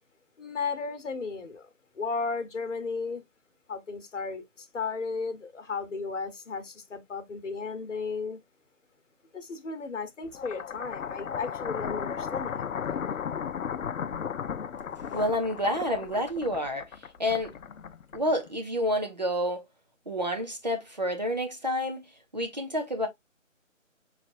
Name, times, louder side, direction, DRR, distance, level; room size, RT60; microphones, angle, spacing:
voice 1, 0.4-1.7 1.9-3.2 3.7-8.4 9.3-12.9, left 4 dB, 65° left, 1.1 m, -34 dB
sound 1, 10.3-18.5, left 7 dB, 80° left, 0.6 m, -35 dB
voice 2, 15.1-16.9 17.2-17.5 18.1-19.7 20.1-22.0 22.3-23.1, equal, 35° right, 0.6 m, -29 dB
5.1 x 3.3 x 2.5 m
figure-of-eight pair, 165°, 39 cm